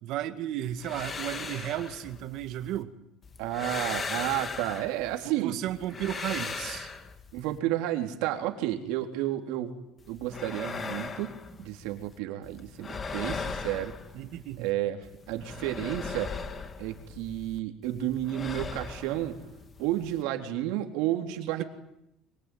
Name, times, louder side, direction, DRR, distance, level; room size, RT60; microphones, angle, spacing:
voice 1, 0.0-2.9 5.2-6.9 14.1-14.7, right 12 dB, 60° right, 9 dB, 1.9 m, -34 dB
sound 1, 0.6-2.8 3.2-5.3 5.7-7.6 10.0-12.2 12.4-14.7 15.0-17.6 17.8-20.2, left 4 dB, 25° left, 1.9 m, -39 dB
voice 2, 3.4-5.6 7.3-9.7 10.1-13.9 14.6-15.0 15.3-16.3 16.8-19.4 19.8-21.6, right 13 dB, 85° right, 4 dB, 3.7 m, -31 dB
23.5 x 23.5 x 9.4 m, 0.83 s
cardioid pair, 160°, 0 cm